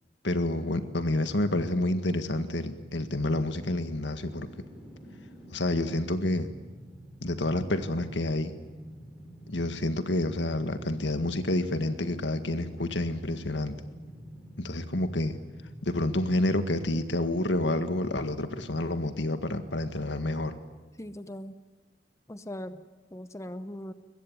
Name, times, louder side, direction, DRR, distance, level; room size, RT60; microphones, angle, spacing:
voice 1, 0.2-4.5 5.5-6.5 7.2-8.5 9.5-13.8 14.6-15.4 15.8-20.6, left 1 dB, 85° left, 9 dB, 1.8 m, -29 dB
sound 1, 4.3-17.4 17.7-17.8, equal, 5° right, 5.9 m, -48 dB
voice 2, 21.0-21.6 22.3-22.8 23.1-23.9, left 1 dB, 15° left, 11 dB, 0.8 m, -39 dB
22.5 x 21.5 x 9.6 m, 1.2 s
head